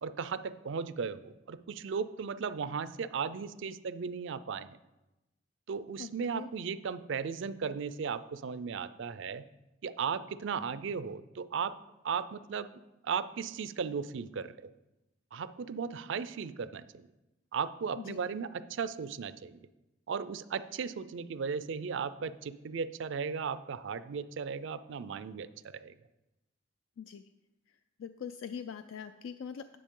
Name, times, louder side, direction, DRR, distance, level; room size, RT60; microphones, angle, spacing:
voice 1, 0.0-4.8 5.7-9.4 9.8-11.7 12.0-12.7 13.0-14.7 15.3-17.1 17.5-19.6 20.1-25.9, right 6 dB, 65° right, 14 dB, 0.4 m, -36 dB
voice 2, 6.0-6.5 18.1-18.2 27.0-27.2 28.0-29.8, left 7 dB, 80° left, 10 dB, 0.3 m, -42 dB
9.9 x 7.0 x 3.7 m, 1.0 s
head